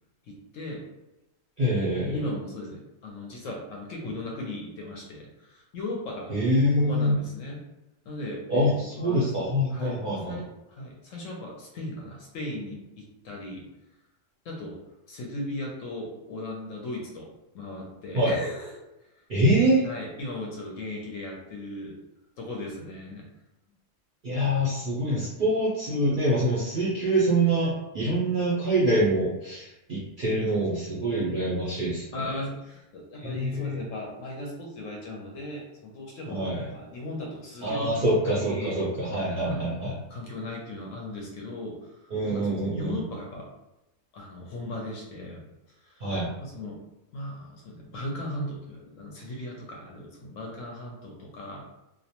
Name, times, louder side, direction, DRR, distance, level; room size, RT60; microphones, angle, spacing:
voice 1, 0.3-0.8 2.1-6.4 6.8-7.6 8.1-13.7 14.4-14.8 15.1-17.3 17.5-18.7 19.8-22.0 22.4-23.3 25.3-25.4 32.1-38.0 38.2-38.8 39.4-39.7 40.1-43.5 44.1-45.5 45.8-46.0 46.4-46.8 47.1-51.6, left 1 dB, 70° left, -1 dB, 0.9 m, -37 dB
voice 2, 1.6-2.2 6.3-7.1 8.5-10.4 18.1-18.3 19.3-19.8 24.2-32.2 33.2-33.8 36.3-36.6 37.6-40.0 42.1-42.9 46.0-46.3, right 1 dB, 55° right, -8 dB, 0.5 m, -25 dB
2.4 x 2.1 x 2.8 m, 0.94 s
omnidirectional pair, 1.6 m